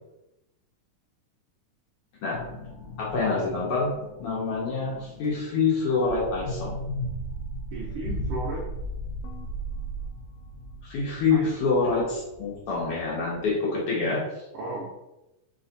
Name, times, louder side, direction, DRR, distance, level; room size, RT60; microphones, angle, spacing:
sound 1, 2.3-13.4, equal, 80° left, 1.4 m, -37 dB
voice 1, 3.0-6.8 10.8-14.2, left 4 dB, 65° left, -5 dB, 1.5 m, -26 dB
voice 2, 7.7-8.7 11.3-11.5 14.5-14.9, right 2 dB, 80° right, -3 dB, 1.3 m, -34 dB
4.3 x 3.2 x 3.9 m, 0.94 s
omnidirectional pair, 3.5 m